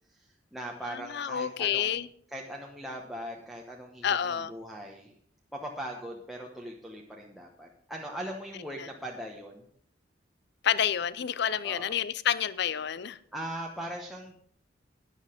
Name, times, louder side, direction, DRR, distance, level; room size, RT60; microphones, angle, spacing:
voice 1, 0.1-2.0 2.3-5.1 5.5-9.6 11.6-11.9 13.3-14.3, right 1 dB, ahead, 1.1 m, -40 dB
voice 2, 0.9-2.1 4.0-4.5 10.6-13.2, left 9 dB, 65° left, 0.5 m, -29 dB
11.5 x 9.8 x 5.1 m
head